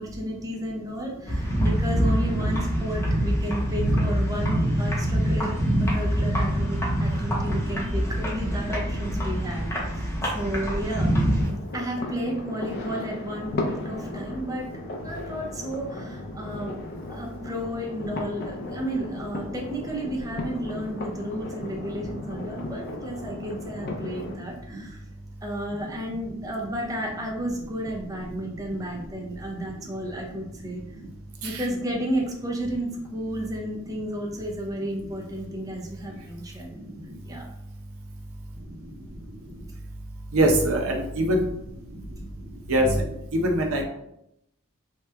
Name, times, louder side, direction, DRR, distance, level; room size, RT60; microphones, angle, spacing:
voice 1, 0.0-11.1 11.7-14.7 15.0-16.8 17.1-25.0 25.4-30.8 31.4-36.8 37.2-37.5, equal, 15° right, -1 dB, 0.4 m, -32 dB
sound 1, 1.3-11.5, equal, 15° left, 0.7 m, -25 dB
sound 2, 10.5-24.4, left 2 dB, 50° left, 0.5 m, -36 dB
voice 2, 40.3-41.4 42.7-43.0 43.3-43.8, right 1 dB, 80° right, 2 dB, 0.6 m, -22 dB
2.9 x 2.2 x 3.3 m, 0.80 s
head